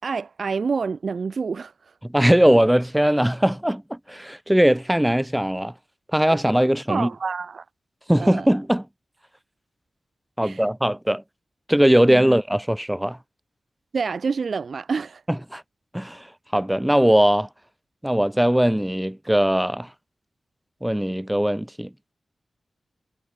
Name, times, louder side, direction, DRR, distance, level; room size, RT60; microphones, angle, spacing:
voice 1, 0.0-1.9 6.3-6.4 6.9-7.6 8.2-8.5 10.4-10.6 12.1-12.2 13.9-15.2, right 5 dB, 70° right, 7.5 m, -28 dB
voice 2, 2.0-5.7 6.1-7.1 8.1-8.9 10.4-11.2 11.7-13.2 15.3-15.6 15.9-16.3 16.5-17.5 18.0-19.9 20.8-21.9, equal, 10° right, 6.7 m, -20 dB
cardioid pair, 40°, 0 cm